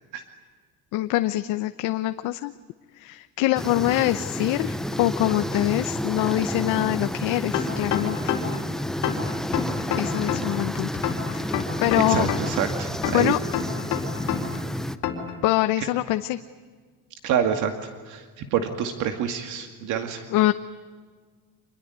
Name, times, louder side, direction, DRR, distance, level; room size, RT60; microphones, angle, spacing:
voice 1, 0.9-2.5 2.9-8.4 10.0-10.9 11.3-11.5 11.8-12.3 13.1-13.4 15.4-16.4 20.3-20.5, left 16 dB, 70° left, 10 dB, 0.9 m, -24 dB
sound 1, 3.6-15.0, left 1 dB, ahead, 0.7 m, -30 dB
sound 2, 7.5-8.6 9.0-10.6 11.0-12.6 13.0-14.6 15.0-15.3, left 10 dB, 55° left, 4.1 m, -28 dB
voice 2, 12.1-13.3 17.2-17.7 18.1-20.2, right 8 dB, 65° right, 6 dB, 2.3 m, -27 dB
26.5 x 21.5 x 9.5 m, 1.5 s
cardioid pair, 160°, 33 cm